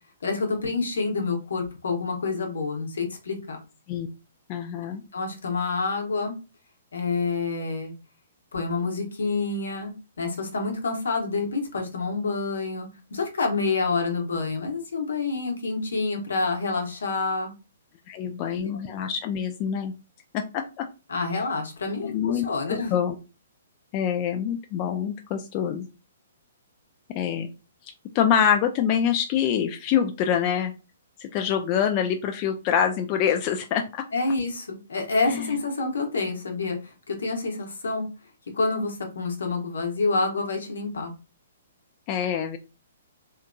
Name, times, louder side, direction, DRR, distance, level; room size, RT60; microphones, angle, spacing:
voice 1, 0.2-3.6 5.1-6.4 6.9-7.9 8.5-17.5 18.5-18.7 21.1-22.9 34.1-38.1 38.5-41.1, left 3 dB, 75° left, 2 dB, 0.9 m, -28 dB
voice 2, 4.5-5.0 18.1-19.9 20.3-20.6 22.0-23.1 23.9-25.9 27.2-27.5 27.8-30.7 31.2-33.8 35.3-35.6 42.1-42.6, left 8 dB, 35° left, 5 dB, 0.3 m, -25 dB
2.7 x 2.5 x 2.2 m, 0.31 s
hypercardioid pair, 125°, 0 cm